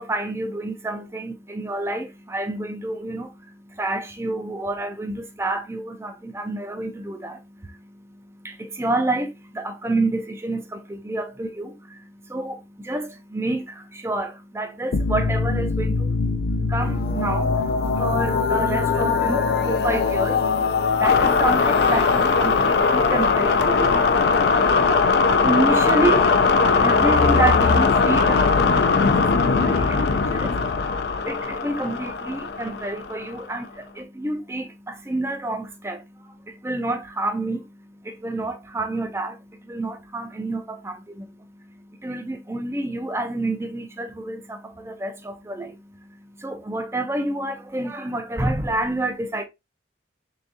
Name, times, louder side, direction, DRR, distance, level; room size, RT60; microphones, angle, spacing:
voice 1, 0.0-49.5, right 2 dB, 15° right, 0.4 m, -29 dB
sound 1, 14.9-33.4, left 4 dB, 60° left, 0.4 m, -20 dB
3.8 x 3.4 x 2.6 m
head